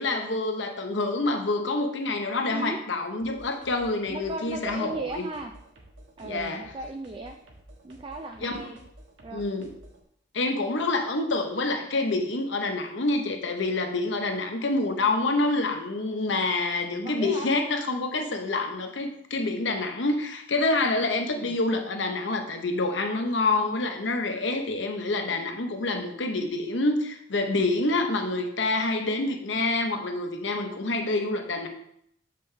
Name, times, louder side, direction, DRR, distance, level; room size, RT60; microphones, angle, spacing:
voice 1, 0.0-5.3 6.2-6.6 8.4-8.6 9.3-9.7 10.3-31.7, left 2 dB, 75° left, 5 dB, 0.9 m, -27 dB
sound 1, 3.2-10.0, right 1 dB, 85° right, 1.4 m, -51 dB
voice 2, 4.1-5.5 6.2-7.4 7.8-8.8 9.2-9.4 17.0-17.5 21.3-21.6, right 2 dB, 25° right, 4 dB, 0.4 m, -36 dB
7.3 x 5.3 x 3.3 m, 0.73 s
head